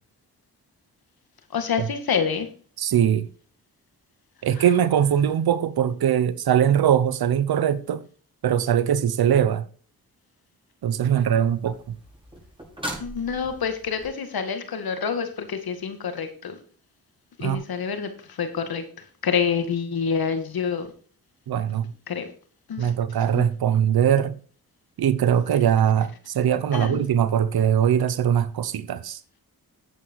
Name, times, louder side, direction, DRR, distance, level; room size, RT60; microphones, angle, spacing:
voice 1, 1.5-2.5 4.6-4.7 13.0-16.6 17.4-20.9 22.1-22.3 22.7-22.9 23.4-23.5 26.7-27.1, left 6 dB, 75° left, 2.1 m, -27 dB
voice 2, 2.8-3.3 4.4-8.0 8.4-9.6 10.8-12.0 17.4-17.6 21.5-21.9 22.8-24.4 25.0-29.2, right 9 dB, 75° right, 0.9 m, -21 dB
sound 1, 11.0-14.1 17.5-17.6, right 1 dB, 15° right, 6.0 m, -39 dB
10.0 x 8.2 x 4.7 m
cardioid pair, 60°, 37 cm